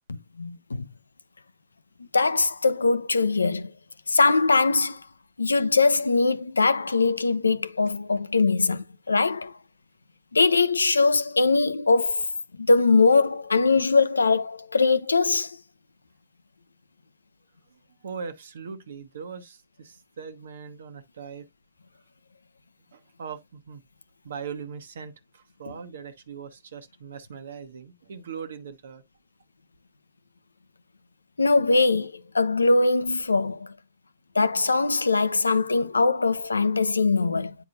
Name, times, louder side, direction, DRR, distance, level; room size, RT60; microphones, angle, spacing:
voice 1, 0.1-0.9 2.1-3.7 4.1-5.0 5.4-9.5 10.3-12.3 12.6-15.6 31.4-33.7 34.3-37.5, left 3 dB, 85° left, 0.5 m, -22 dB
voice 2, 18.0-21.5 22.9-23.8 24.2-29.0, right 6 dB, 70° right, 1.1 m, -40 dB
9.2 x 4.7 x 2.6 m
figure-of-eight pair, 110°, 0 cm